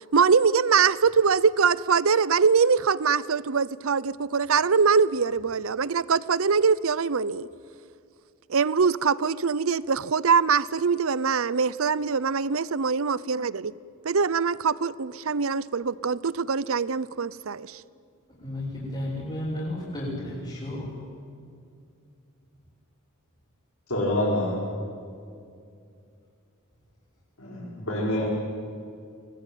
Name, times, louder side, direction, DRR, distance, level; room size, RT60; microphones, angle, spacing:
voice 1, 0.1-7.5 8.5-13.7 14.0-17.8, right 5 dB, 70° right, 19 dB, 0.7 m, -23 dB
voice 2, 18.4-20.9, left 1 dB, 25° left, -8 dB, 6.6 m, -33 dB
voice 3, 23.9-24.6 27.4-28.3, left 1 dB, 75° left, -6 dB, 5.7 m, -26 dB
24.0 x 21.0 x 9.2 m, 2.4 s
head